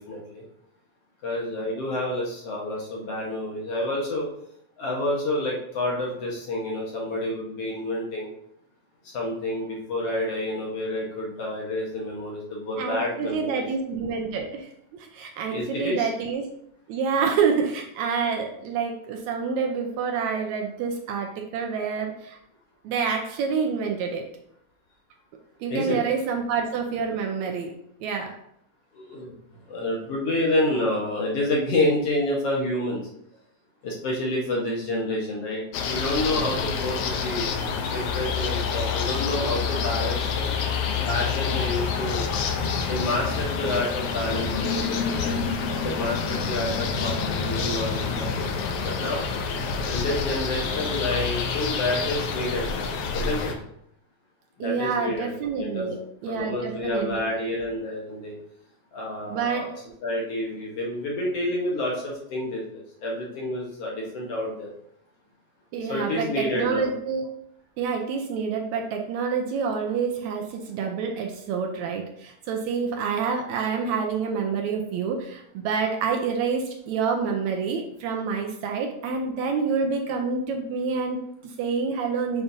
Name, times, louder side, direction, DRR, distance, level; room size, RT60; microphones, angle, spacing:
voice 1, 0.1-0.4 1.2-4.3 4.8-8.3 9.0-13.6 15.4-16.1 25.7-26.0 28.9-29.3 29.7-33.0 33.8-37.5 37.9-40.5 41.0-42.2 42.7-45.4 45.8-49.2 49.9-52.7 53.1-53.5 54.6-55.9 56.3-58.3 58.9-59.7 60.0-64.7 65.9-66.9, left 1 dB, 60° left, -3 dB, 1.8 m, -29 dB
voice 2, 12.8-16.5 16.9-22.4 22.8-24.2 25.6-27.7 28.0-28.3 47.7-47.8 54.6-57.2 59.3-59.7 65.7-67.2 67.8-82.4, right 5 dB, 75° right, 2 dB, 1.9 m, -27 dB
sound 1, 35.7-53.5, left 5 dB, 80° left, 1.3 m, -27 dB
7.1 x 5.2 x 2.7 m, 0.72 s
omnidirectional pair, 3.6 m